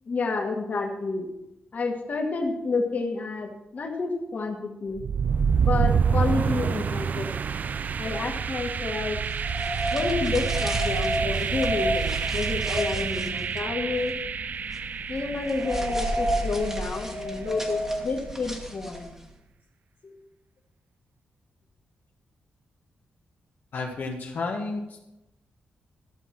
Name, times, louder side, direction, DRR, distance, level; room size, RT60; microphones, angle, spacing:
voice 1, 0.1-1.3 1.7-5.0 5.6-7.3 8.0-9.2 9.9-14.2 15.1-19.1 20.0-20.2, left 3 dB, 45° left, 1 dB, 1.9 m, -30 dB
sound 1, 4.9-16.8, right 6 dB, 50° right, 0.4 m, -27 dB
sound 2, 9.3-19.3, equal, 10° right, 1.7 m, -32 dB
voice 2, 23.7-25.0, left 3 dB, 65° left, -1 dB, 1.8 m, -32 dB
13.0 x 6.8 x 6.0 m, 0.93 s
cardioid pair, 105°, 4 cm